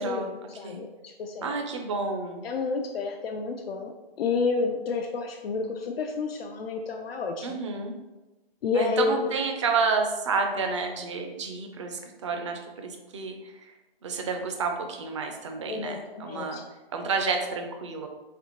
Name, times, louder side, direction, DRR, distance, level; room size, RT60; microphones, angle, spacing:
voice 1, 0.0-1.5 2.4-3.9 4.2-7.6 8.6-9.3 15.7-16.6, left 4 dB, 70° left, 3 dB, 0.5 m, -30 dB
voice 2, 1.4-2.4 7.4-7.9 8.7-13.7 14.0-16.6 16.9-18.1, right 4 dB, 30° right, 4 dB, 0.4 m, -30 dB
4.2 x 2.5 x 2.9 m, 1.1 s
hypercardioid pair, 150°, 30 cm